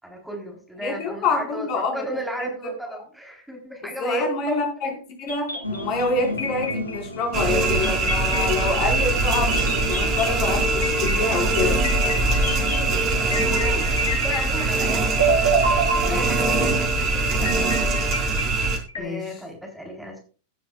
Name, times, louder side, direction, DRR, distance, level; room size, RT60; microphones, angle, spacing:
voice 1, 0.0-4.9 12.6-15.1 15.5-15.7 16.1-17.8 18.5-20.2, right 1 dB, 5° right, 1 dB, 3.9 m, -35 dB
voice 2, 0.8-2.0 2.4-3.0 4.0-11.8 16.0-16.7 19.0-19.2, left 3 dB, 40° left, 2 dB, 4.9 m, -27 dB
sound 1, 5.3-6.1 6.4-7.2 7.8-14.9 15.2-16.7 17.4-19.0, right 2 dB, 65° left, 6.1 m, -27 dB
sound 2, 5.6-12.9, left 1 dB, 90° right, 6.7 m, -35 dB
sound 3, 7.3-18.8, right 3 dB, 35° right, 3.2 m, -22 dB
16.5 x 10.5 x 2.4 m, 0.38 s
figure-of-eight pair, 90°, 0 cm